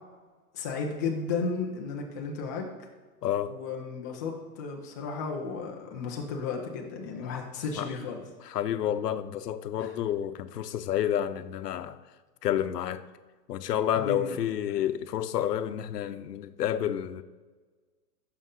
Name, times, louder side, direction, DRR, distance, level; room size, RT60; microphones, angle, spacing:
voice 1, 0.5-2.7 3.5-8.2 9.8-9.9 13.9-14.4, left 4 dB, 10° left, 0.4 m, -34 dB
voice 2, 3.2-3.6 7.8-7.9 8.4-12.0 12.4-13.0 13.5-17.2, left 10 dB, 75° left, 0.9 m, -29 dB
15.0 x 6.9 x 3.8 m
hypercardioid pair, 155°, 48 cm